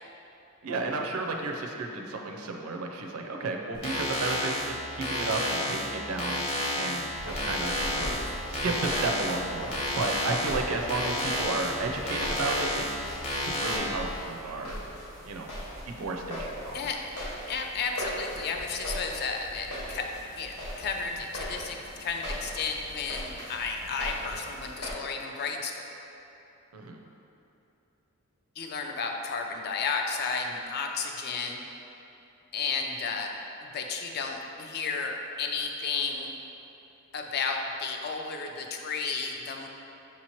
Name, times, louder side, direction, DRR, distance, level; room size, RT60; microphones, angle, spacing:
voice 1, 0.6-6.4 6.8-8.0 8.5-13.0 13.4-14.8 15.2-15.5 15.9-16.8 26.7-27.0, right 3 dB, 70° right, 2 dB, 0.5 m, -32 dB
sound 1, 3.7-13.8, left 1 dB, 30° left, 0.9 m, -31 dB
sound 2, 7.1-24.9, equal, 80° left, 1.1 m, -40 dB
voice 2, 17.5-20.1 20.4-25.8 28.6-31.6 32.5-33.3 33.7-36.3 37.1-39.7, left 5 dB, 45° left, 2 dB, 0.4 m, -32 dB
6.2 x 2.9 x 2.9 m, 2.9 s
head